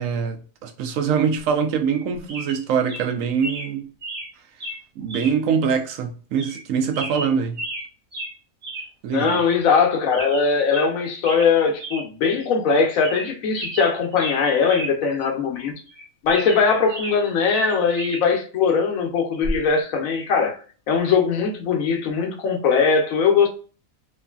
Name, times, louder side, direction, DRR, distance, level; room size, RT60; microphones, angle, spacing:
voice 1, 0.0-3.9 5.0-7.6 9.0-9.4, right 6 dB, 75° right, 1.0 m, -23 dB
sound 1, 1.9-2.0 2.3-2.6 2.9-3.1 3.4-3.7 4.0-4.3 4.6-4.8 5.1-5.4 5.7-5.8 6.4-6.6 6.9-7.9 8.1-8.3 8.6-8.9 9.2-9.3 9.6-9.8 10.1-10.9 11.2-11.5 11.8-12.0 12.4-12.5 12.9-13.3 13.5-14.9 15.2-15.3 15.9-17.2 17.5-18.2 19.4-19.7, right 1 dB, 45° right, 1.0 m, -33 dB
voice 2, 9.1-15.7 16.2-20.6 20.9-23.5, left 5 dB, 80° left, 1.1 m, -20 dB
3.0 x 2.5 x 2.3 m
omnidirectional pair, 1.4 m